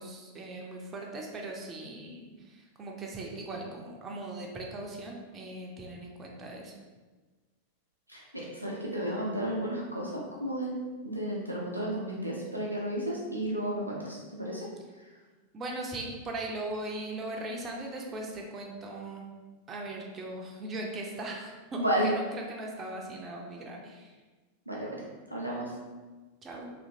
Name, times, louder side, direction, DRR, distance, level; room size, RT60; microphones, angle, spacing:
voice 1, 0.0-6.7 15.5-19.3 19.7-24.1 26.4-26.7, right 2 dB, 20° right, -1 dB, 0.4 m, -39 dB
voice 2, 8.1-10.7 11.0-14.6 21.8-22.1 24.7-25.0 25.3-25.7, right 1 dB, 85° right, -4 dB, 0.5 m, -32 dB
2.7 x 2.5 x 2.6 m, 1.3 s
figure-of-eight pair, 90°, 0 cm